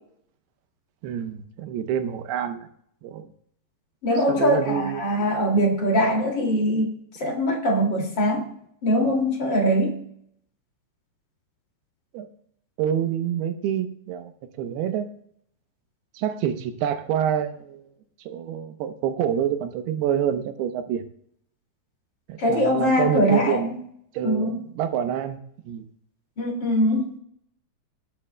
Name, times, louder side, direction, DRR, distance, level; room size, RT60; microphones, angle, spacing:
voice 1, 1.0-2.7 3.0-3.3 4.3-5.3 12.1-12.3 12.8-14.3 14.6-15.1 16.1-17.8 18.2-21.1 22.3-23.7 24.1-25.4 25.7-25.9, right 9 dB, 85° right, 8 dB, 2.9 m, -27 dB
voice 2, 4.0-6.9 7.2-8.5 8.8-10.0 22.4-23.6 24.2-24.6 26.4-27.1, equal, 35° left, 0 dB, 2.4 m, -22 dB
18.5 x 9.9 x 2.2 m, 0.68 s
omnidirectional pair, 4.5 m